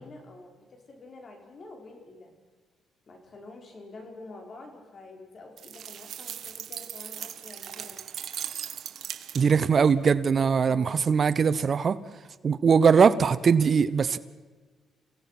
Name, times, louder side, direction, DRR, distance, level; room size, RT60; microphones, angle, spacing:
voice 1, 0.0-2.3 3.1-8.0 10.6-11.0, left 2 dB, 45° left, 3 dB, 5.5 m, -47 dB
sound 1, 5.6-9.7, right 9 dB, 65° right, 1.2 m, -39 dB
voice 2, 9.3-12.0 12.4-14.2, right 6 dB, 45° right, 15 dB, 0.8 m, -21 dB
29.5 x 16.5 x 6.1 m, 1.4 s
cardioid pair, 90°, 0 cm